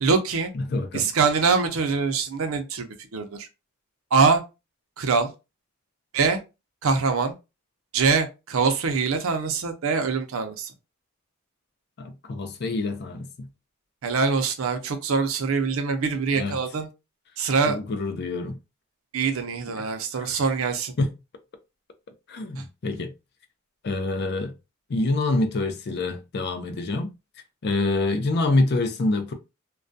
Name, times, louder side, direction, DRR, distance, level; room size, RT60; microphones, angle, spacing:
voice 1, 0.0-0.5 0.9-3.5 4.1-4.4 5.0-5.3 6.1-6.4 6.8-7.3 7.9-10.7 14.0-16.9 17.4-17.8 19.1-20.9 22.6-22.7, right 5 dB, 70° right, 0.5 m, -23 dB
voice 2, 0.5-1.1 12.0-13.5 16.3-16.6 17.7-18.6 19.8-19.9 20.1-20.3 21.0-21.1 22.3-23.1 23.8-24.5 24.9-27.1 27.6-29.3, left 2 dB, 50° left, 0.4 m, -26 dB
2.3 x 2.1 x 2.5 m
head